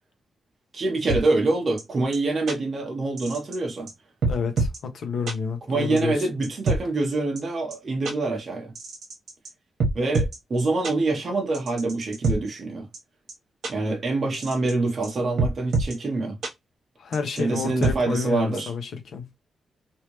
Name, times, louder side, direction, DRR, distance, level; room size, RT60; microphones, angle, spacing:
voice 1, 0.7-3.9 5.7-8.7 9.9-12.9 13.7-16.4 17.4-18.7, right 2 dB, 40° right, 1.0 m, -25 dB
sound 1, 1.1-1.2 1.8-1.9 2.1-2.2 2.5-2.6 3.2-3.6 3.9-4.0 4.2-4.8 5.3-5.4 6.0-6.8 7.4-7.5 7.7-7.8 8.0-8.1 8.8-9.5 9.8-10.4 10.8-10.9 11.5-12.4 12.9-13.0 13.3-13.4 13.6-13.7 14.3-14.7 15.0-15.1 15.4-15.9 16.4-16.5 17.1-17.9, right 3 dB, 65° right, 1.3 m, -25 dB
voice 2, 4.3-6.3 17.0-19.3, left 5 dB, 65° left, 0.8 m, -30 dB
3.3 x 2.7 x 3.0 m
wide cardioid pair, 140°, 0 cm